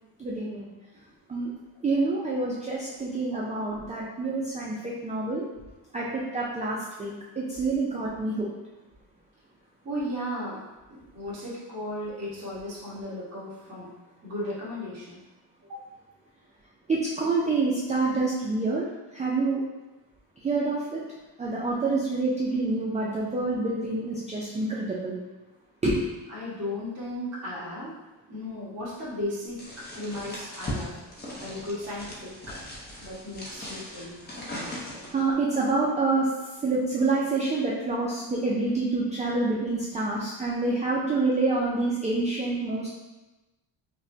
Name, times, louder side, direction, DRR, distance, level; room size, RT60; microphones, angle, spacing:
voice 1, 0.2-0.7 1.3-1.5 1.8-5.4 5.9-8.5 16.9-18.9 19.1-19.6 20.4-21.0 21.4-25.2 25.8-26.0 35.1-36.3 36.6-42.9, right 3 dB, 20° right, -5 dB, 0.3 m, -27 dB
voice 2, 9.8-10.6 10.9-13.9 14.2-15.2 15.7-15.8 26.3-27.9 28.3-29.6 29.9-31.0 31.4-32.6 33.0-34.2, left 1 dB, 35° right, -9 dB, 1.5 m, -35 dB
sound 1, 29.6-35.3, left 1 dB, 20° left, 0.7 m, -39 dB
5.1 x 2.1 x 2.7 m, 1.1 s
cardioid pair, 150°, 44 cm